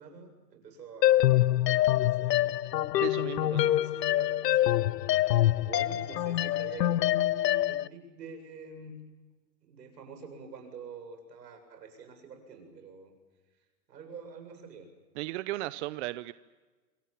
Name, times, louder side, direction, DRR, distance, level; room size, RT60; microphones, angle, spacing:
voice 1, 0.0-2.6 3.4-5.0 5.3-9.0 9.6-13.1 13.9-14.9, right 4 dB, 80° right, 6 dB, 7.9 m, -46 dB
sound 1, 1.0-7.9, left 14 dB, 80° left, 0.8 m, -25 dB
voice 2, 3.0-3.7 15.2-16.3, right 18 dB, 45° right, 15 dB, 0.8 m, -35 dB
28.0 x 23.5 x 7.5 m, 1.3 s
hypercardioid pair, 130°, 49 cm